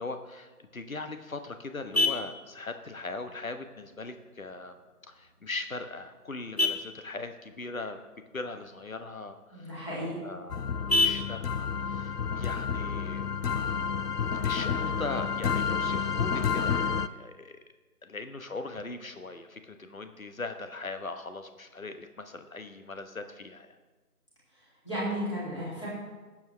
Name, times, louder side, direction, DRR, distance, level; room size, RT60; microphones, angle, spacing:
voice 1, 0.0-4.8 5.1-8.0 8.3-9.7 10.2-13.3 14.4-17.6 18.0-23.7, left 3 dB, 60° left, 8 dB, 1.1 m, -40 dB
Vehicle horn car horn honking, 0.7-13.7, left 2 dB, 40° left, 0.7 m, -35 dB
voice 2, 9.5-10.2 24.8-25.9, equal, 20° left, -9 dB, 2.7 m, -33 dB
sound 1, 10.5-17.1, left 6 dB, 80° left, 0.6 m, -30 dB
20.0 x 7.5 x 3.3 m, 1.3 s
figure-of-eight pair, 170°, 47 cm